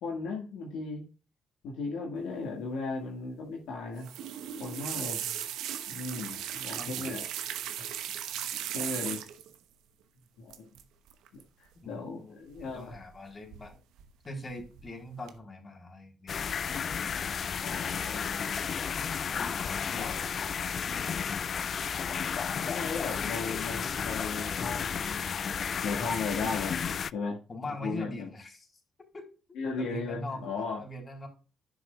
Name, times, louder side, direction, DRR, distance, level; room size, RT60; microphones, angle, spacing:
voice 1, 0.0-1.0 1.6-4.1 4.6-5.3 5.9-7.2 8.7-9.2 10.4-10.6 11.6-13.0 17.6-18.2 19.6-20.2 22.6-25.2 25.8-27.4 27.8-28.3 29.5-30.8, left 4 dB, 75° left, -1 dB, 1.8 m, -36 dB
sound 1, 4.0-9.5 10.5-10.8 11.1-11.4 12.6-13.2 13.5-14.1 14.5-14.9 15.3-15.4, right 10 dB, 75° right, 0.9 m, -37 dB
voice 2, 6.8-7.2 11.8-13.8 14.2-16.6 17.0-17.4 17.7-18.9 19.3-20.3 20.7-21.5 27.5-28.7 29.1-30.5 30.8-31.3, left 1 dB, 40° left, 2 dB, 3.6 m, -43 dB
sound 2, 16.3-27.1, left 7 dB, 55° left, 0.3 m, -33 dB
11.0 x 6.7 x 2.4 m, 0.34 s
hypercardioid pair, 45°, 0 cm